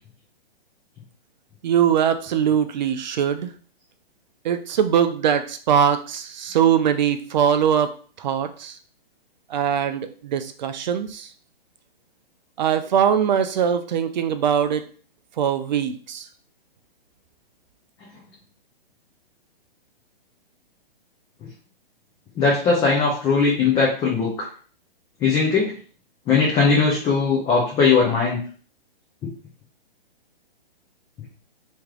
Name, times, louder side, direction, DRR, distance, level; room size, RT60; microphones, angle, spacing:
voice 1, 1.6-3.5 4.4-7.9 8.2-8.8 9.5-11.3 12.6-14.9 15.4-16.3, right 8 dB, 45° right, 10 dB, 0.5 m, -21 dB
voice 2, 22.4-24.5 25.2-25.7 26.3-28.4 29.2-29.3, left 4 dB, 15° left, -4 dB, 0.6 m, -19 dB
3.2 x 3.0 x 3.7 m, 0.43 s
hypercardioid pair, 145°, 31 cm